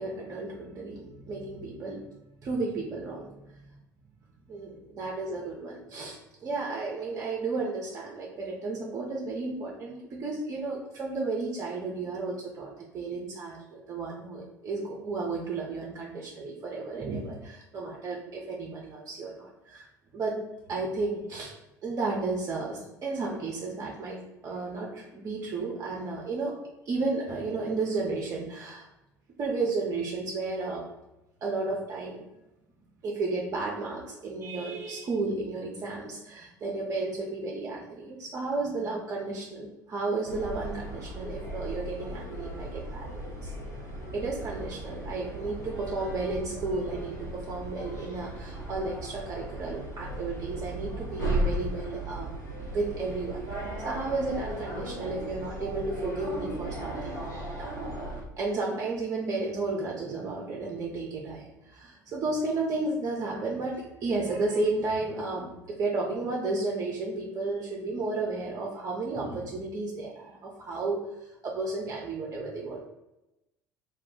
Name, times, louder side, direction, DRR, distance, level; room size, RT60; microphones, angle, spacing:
voice 1, 0.0-2.0 2.4-3.3 4.5-19.9 20.1-20.4 20.7-21.5 21.8-26.5 26.9-28.9 29.4-30.9 31.4-32.2 33.0-43.5 44.1-52.3 52.6-57.7 58.4-71.0 71.4-72.9, right 3 dB, 35° right, -2 dB, 0.5 m, -33 dB
sound 1, 40.2-58.2, right 1 dB, 90° left, 0.7 m, -36 dB
2.2 x 2.0 x 3.7 m, 0.94 s
figure-of-eight pair, 60°, 10 cm